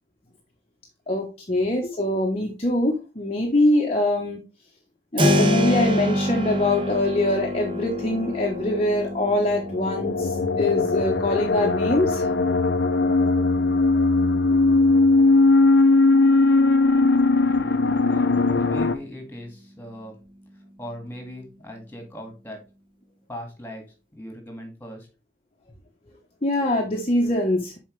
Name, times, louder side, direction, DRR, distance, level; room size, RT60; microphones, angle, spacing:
voice 1, 1.1-4.4 5.1-12.3 26.4-27.8, left 1 dB, 35° left, 0 dB, 1.0 m, -23 dB
Keyboard (musical), 5.2-15.9, equal, 30° right, 0.9 m, -28 dB
sound 1, 9.6-19.0, left 3 dB, 90° left, 0.7 m, -19 dB
voice 2, 18.1-20.2 20.8-22.6 23.3-23.9 24.2-25.1, equal, 10° left, 3 dB, 2.0 m, -39 dB
7.1 x 4.8 x 3.2 m, 0.29 s
head